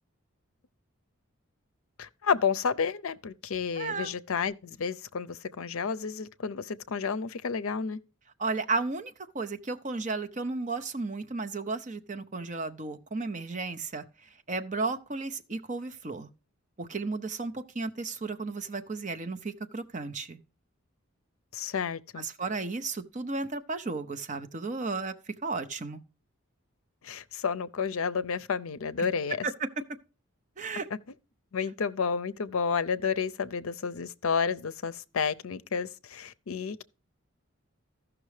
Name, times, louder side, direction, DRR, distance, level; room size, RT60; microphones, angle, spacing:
voice 1, 2.0-8.0 21.5-22.3 27.0-29.5 31.5-36.8, left 6 dB, 75° left, 0.5 m, -31 dB
voice 2, 3.7-4.1 8.4-14.0 14.5-16.3 16.8-20.4 22.2-26.0 29.4-29.7 30.6-30.9, right 3 dB, 35° right, 0.7 m, -34 dB
14.5 x 6.0 x 3.2 m
head